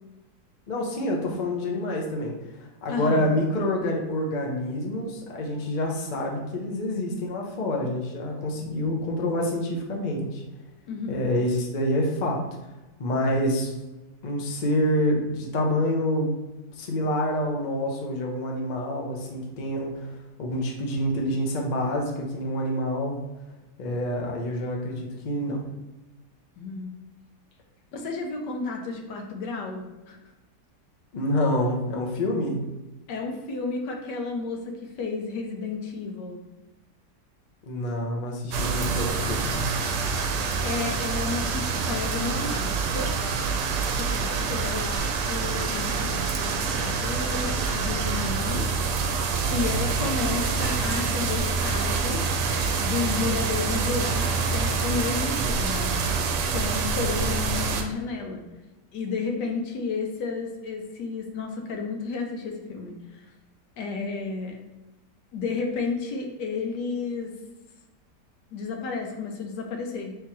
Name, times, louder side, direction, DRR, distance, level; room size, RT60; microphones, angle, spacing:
voice 1, 0.7-10.4 11.1-12.4 13.0-13.7 14.2-16.3 16.8-20.1 20.4-23.2 23.8-25.6 31.1-32.6 37.7-39.5, left 1 dB, 50° left, 0 dB, 0.5 m, -27 dB
voice 2, 2.9-3.3 10.9-11.3 26.6-26.9 27.9-30.2 33.1-36.4 40.6-43.1 44.0-48.7 49.5-52.3 52.8-56.0 56.5-58.4 58.9-63.2 63.8-64.6 65.3-67.3 68.5-70.2, left 4 dB, 80° left, 2 dB, 1.3 m, -32 dB
sound 1, 38.5-57.8, right 4 dB, 75° right, 1.1 m, -26 dB
3.5 x 2.9 x 4.5 m, 1.1 s
omnidirectional pair, 1.8 m